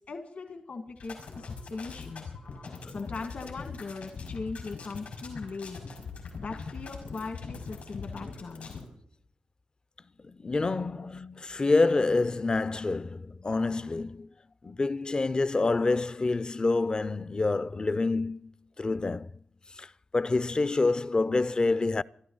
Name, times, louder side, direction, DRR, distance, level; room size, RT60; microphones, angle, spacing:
voice 1, 0.1-2.3 2.9-5.8 6.4-8.7 10.8-11.1, left 4 dB, 70° left, 1.8 m, -39 dB
sound 1, 1.0-8.8, left 4 dB, 90° left, 5.0 m, -41 dB
voice 2, 10.2-14.3 14.6-18.5 18.8-19.3 19.8-22.0, left 3 dB, 35° left, 0.5 m, -27 dB
25.5 x 12.0 x 3.9 m
cardioid pair, 55°, 2 cm